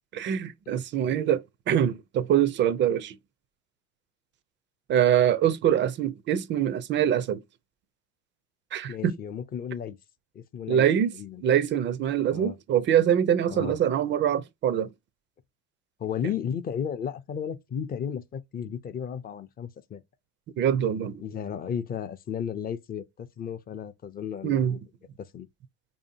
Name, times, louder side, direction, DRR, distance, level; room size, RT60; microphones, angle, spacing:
voice 1, 0.1-1.4 1.7-3.2 4.9-7.4 8.7-9.2 10.7-11.1 11.4-14.9 20.6-21.2 24.4-24.8, right 9 dB, 35° right, 0.4 m, -24 dB
voice 2, 8.9-10.0 10.3-10.9 11.1-11.4 12.3-12.6 13.5-13.8 16.0-20.0 21.2-24.7 25.3-25.5, left 8 dB, 25° left, 0.4 m, -34 dB
4.8 x 2.8 x 2.6 m
hypercardioid pair, 90°, 36 cm